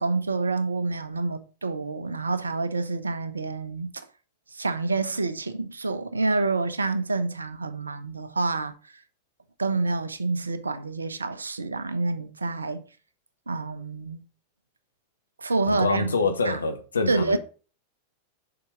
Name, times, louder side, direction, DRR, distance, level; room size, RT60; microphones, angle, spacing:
voice 1, 0.0-4.0 4.5-8.9 9.6-12.8 13.5-14.2 15.4-16.1 16.4-16.6 17.1-17.4, right 3 dB, 75° right, 0.8 m, -28 dB
voice 2, 15.6-17.4, left 4 dB, 75° left, 1.2 m, -26 dB
6.8 x 6.0 x 3.9 m
figure-of-eight pair, 90°, 0 cm